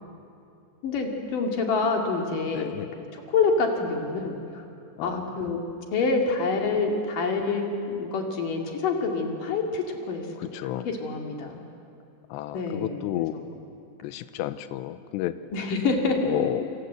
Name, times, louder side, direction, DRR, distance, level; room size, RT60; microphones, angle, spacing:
voice 1, 0.8-2.7 3.1-4.6 5.0-5.6 5.9-10.3 10.6-11.6 12.5-13.5 15.5-16.3, left 4 dB, 50° left, 2 dB, 3.4 m, -27 dB
voice 2, 2.5-2.9 5.0-5.3 10.4-10.9 12.3-13.4 14.0-15.3 16.2-16.7, left 13 dB, 75° left, 12 dB, 2.8 m, -31 dB
28.0 x 26.5 x 8.0 m, 2.6 s
omnidirectional pair, 5.7 m